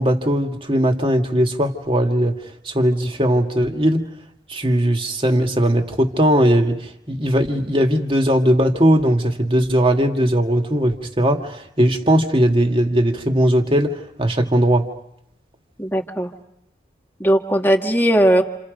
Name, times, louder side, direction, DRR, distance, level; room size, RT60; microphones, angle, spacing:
voice 1, 0.0-2.4 2.7-4.0 4.5-14.9, equal, 30° right, 3 dB, 2.3 m, -18 dB
voice 2, 15.8-16.3 17.2-18.4, right 1 dB, 10° left, 3 dB, 1.9 m, -17 dB
29.0 x 28.5 x 5.3 m, 0.79 s
head